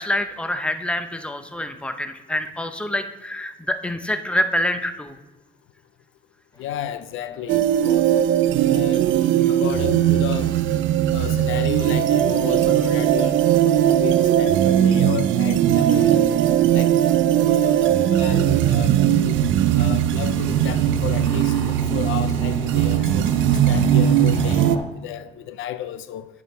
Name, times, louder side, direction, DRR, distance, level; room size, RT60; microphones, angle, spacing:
voice 1, 0.0-5.1, left 1 dB, 5° left, 0.7 m, -26 dB
sound 1, 6.5-24.8, left 1 dB, 20° left, 1.6 m, -40 dB
voice 2, 6.6-8.1 8.6-9.1 9.5-10.5 11.1-16.3 16.7-17.0 17.4-19.4 19.7-23.3 23.7-26.3, left 11 dB, 85° left, 0.5 m, -32 dB
sound 2, 7.5-24.8, right 11 dB, 75° right, 0.5 m, -19 dB
9.3 x 6.0 x 4.2 m
cardioid pair, 90°, 20 cm